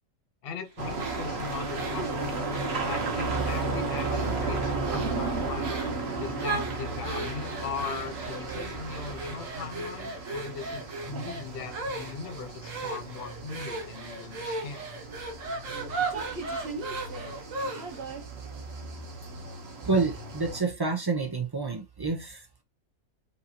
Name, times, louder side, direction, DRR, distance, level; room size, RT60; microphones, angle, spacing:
voice 1, 0.4-2.4 2.8-5.7 6.2-14.8, left 5 dB, 50° left, 0.9 m, -39 dB
sound 1, 0.8-20.6, right 3 dB, 50° right, 1.2 m, -34 dB
sound 2, 1.0-3.6 4.0-4.5 4.8-5.2 5.6-6.0 6.4-18.1, right 3 dB, 70° right, 1.5 m, -37 dB
voice 2, 19.8-22.6, right 4 dB, 35° right, 0.3 m, -28 dB
5.4 x 2.7 x 2.8 m
omnidirectional pair, 1.4 m